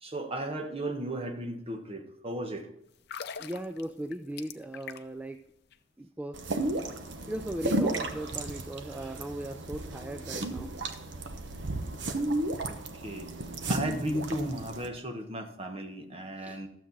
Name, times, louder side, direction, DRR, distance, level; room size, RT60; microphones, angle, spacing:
voice 1, 0.0-2.7 3.3-3.4 12.7-13.3 13.7-16.7, right 1 dB, 30° right, 5 dB, 1.1 m, -35 dB
sound 1, 2.9-5.3 5.6-5.8, left 7 dB, 60° left, 0.6 m, -43 dB
voice 2, 3.4-5.4 6.0-6.4 6.7-6.8 7.3-10.7 16.4-16.6, right 1 dB, 10° right, 7 dB, 0.3 m, -38 dB
sound 2, 6.3-14.9, right 2 dB, 70° right, 1.0 m, -34 dB
12.5 x 7.4 x 4.0 m, 0.79 s
head